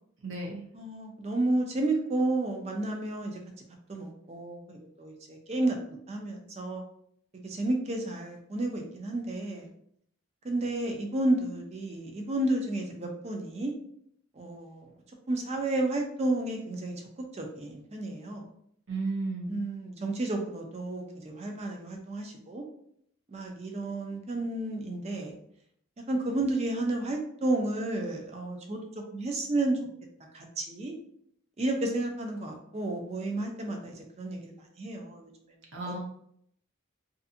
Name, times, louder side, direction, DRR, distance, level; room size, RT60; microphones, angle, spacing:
voice 1, 0.2-0.7 18.9-19.6 35.7-36.0, right 3 dB, 60° right, -2 dB, 0.7 m, -33 dB
voice 2, 0.7-3.4 3.9-6.8 7.3-9.7 10.4-13.7 14.4-14.9 15.3-17.0 17.3-18.5 19.5-22.6 23.3-25.4 26.1-28.8 29.1-29.8 30.3-30.9 31.6-35.3 35.8-36.0, right 2 dB, 30° right, 2 dB, 0.4 m, -31 dB
2.5 x 2.5 x 2.5 m, 0.69 s
head